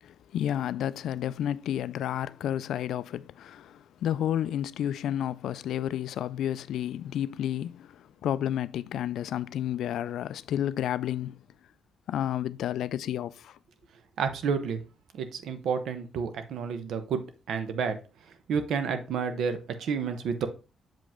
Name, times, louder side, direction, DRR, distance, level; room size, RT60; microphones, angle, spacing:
voice 1, 0.0-11.4 12.1-13.6, left 11 dB, 80° left, 0.3 m, -31 dB
voice 2, 14.2-14.8 15.1-17.2 17.5-18.0 18.5-20.5, right 6 dB, 75° right, 1.0 m, -30 dB
7.2 x 5.3 x 3.6 m
cardioid pair, 150°, 0 cm